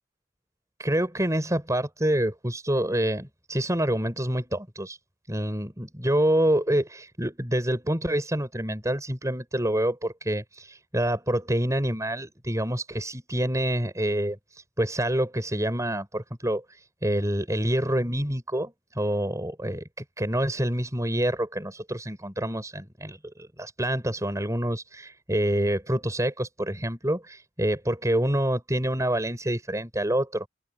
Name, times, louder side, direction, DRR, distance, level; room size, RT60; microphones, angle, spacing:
voice 1, 0.8-5.0 5.3-19.8 20.2-30.5, right 1 dB, 15° right, 5.9 m, -27 dB
open air
head